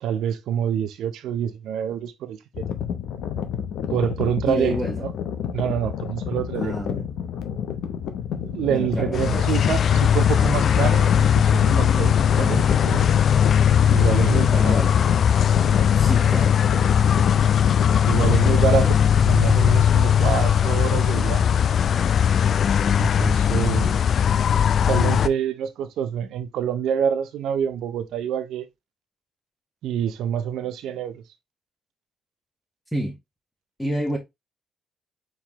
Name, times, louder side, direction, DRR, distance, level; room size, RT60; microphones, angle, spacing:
voice 1, 0.0-2.6 3.9-5.1 5.5-6.7 8.4-13.1 13.9-14.8 18.1-21.6 23.0-24.0 24.9-28.7 29.8-31.2, right 9 dB, 80° right, 0.6 m, -26 dB
sound 1, 2.5-18.6, left 8 dB, 85° left, 0.7 m, -30 dB
voice 2, 4.5-5.0 6.5-7.1 8.7-9.7 14.5-15.0 15.9-16.6 18.6-19.0 32.9-33.2 33.8-34.2, equal, 5° left, 1.4 m, -29 dB
sound 2, 9.1-25.3, left 8 dB, 55° left, 0.3 m, -19 dB
4.6 x 3.7 x 2.9 m
cardioid pair, 90°, 0 cm